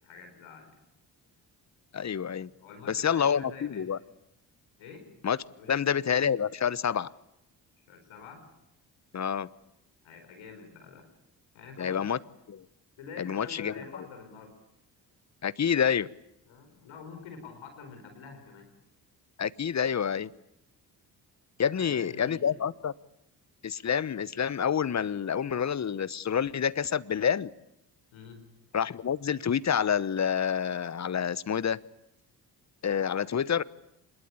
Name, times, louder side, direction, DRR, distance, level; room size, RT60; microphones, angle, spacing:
voice 1, 0.0-0.8 2.6-4.0 4.8-5.1 5.6-5.8 7.9-8.5 10.0-11.1 11.5-12.1 13.0-14.6 16.5-18.8 21.7-22.6 28.1-28.6, left 5 dB, 70° left, 6 dB, 4.6 m, -47 dB
voice 2, 1.9-2.5 2.9-4.0 5.2-5.4 5.7-7.1 9.1-9.5 11.8-12.2 12.5-12.6 13.2-13.7 15.4-16.1 19.4-20.3 21.6-22.9 23.6-27.5 28.7-31.8 32.8-33.6, left 7 dB, 35° left, 19 dB, 1.0 m, -28 dB
26.0 x 21.0 x 8.5 m, 0.86 s
hypercardioid pair, 40°, 49 cm